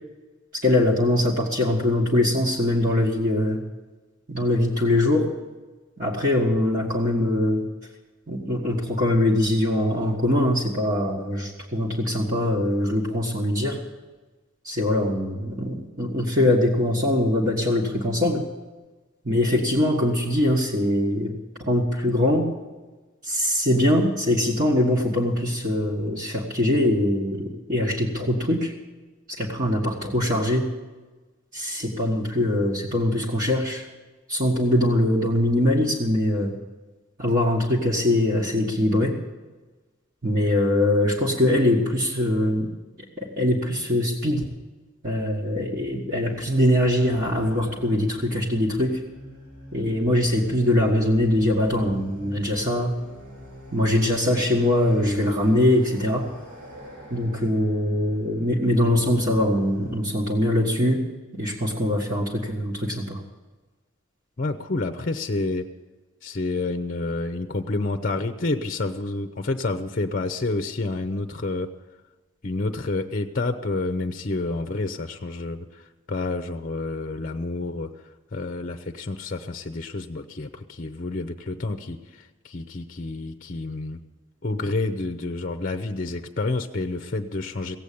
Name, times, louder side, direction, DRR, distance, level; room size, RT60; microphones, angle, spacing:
voice 1, 0.6-3.6 4.3-5.3 6.0-7.7 8.3-13.8 14.6-18.5 19.2-21.3 21.6-22.5 23.2-28.7 29.3-30.7 31.5-33.9 34.3-36.5 37.2-39.1 40.2-42.7 43.2-44.5 45.0-49.0 49.7-52.9 53.7-56.3 57.1-61.1 61.3-63.2, left 1 dB, 40° right, -4 dB, 1.7 m, -22 dB
sound 1, 46.2-60.0, equal, 70° right, 4.7 m, -44 dB
voice 2, 64.4-65.7 66.2-71.7 72.4-78.0 78.3-84.0 84.4-87.8, left 2 dB, 40° left, 8 dB, 0.6 m, -29 dB
17.0 x 8.1 x 8.6 m, 1.3 s
head